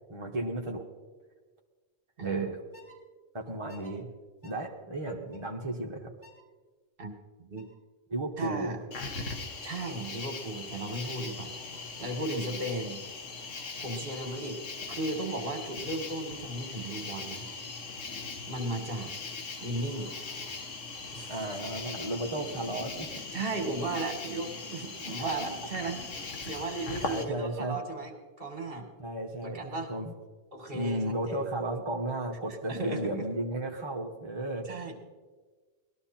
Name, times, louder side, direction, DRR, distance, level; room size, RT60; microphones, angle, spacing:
voice 1, 0.1-0.8 2.2-2.6 3.3-4.1 4.4-6.1 8.1-8.7 21.3-23.1 27.0-27.8 29.0-30.1 30.7-34.7, right 1 dB, 25° right, -1 dB, 1.2 m, -34 dB
voice 2, 2.2-2.5 7.0-7.1 7.4-7.7 8.4-8.8 9.6-11.5 12.0-13.0 13.8-14.6 14.9-17.4 18.5-19.1 19.6-20.1 21.1-21.6 23.3-26.0 26.4-28.1 28.4-28.9 29.4-29.9 30.5-31.5 32.7-33.2 34.7-34.9, right 2 dB, 45° right, 4 dB, 2.3 m, -35 dB
sound 1, 2.7-3.0 3.7-3.9 4.4-4.6 5.3-5.5 6.2-6.5 7.6-7.8 9.2-9.5 9.8-10.1 11.0-13.0 13.4-13.8 14.1-14.4 15.2-15.7 16.1-16.4 17.3-17.6 19.5-20.8, equal, 35° left, 3.6 m, -58 dB
Cricket, 8.9-27.2, left 4 dB, 75° left, 1.7 m, -40 dB
20.0 x 13.0 x 4.4 m, 1.4 s
omnidirectional pair, 1.3 m